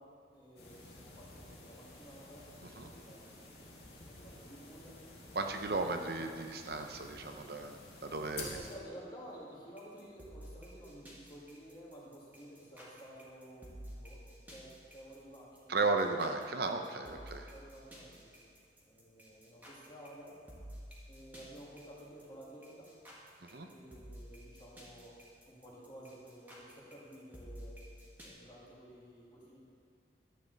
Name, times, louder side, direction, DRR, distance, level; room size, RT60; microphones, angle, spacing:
voice 1, 0.0-4.9 5.6-6.0 8.4-14.2 14.5-16.2 17.0-17.1 17.5-18.5 18.8-20.4 21.1-22.9 23.7-25.1 25.5-27.8 28.2-29.6, equal, 25° left, -6 dB, 2.2 m, -53 dB
sound 1, 0.6-8.7, left 2 dB, 65° left, 2.1 m, -51 dB
voice 2, 5.3-8.6 15.7-17.5 23.4-23.7, right 3 dB, 60° right, 5 dB, 0.8 m, -35 dB
sound 2, 9.8-28.3, equal, 10° right, 1.7 m, -52 dB
12.0 x 8.8 x 4.1 m, 2.4 s
head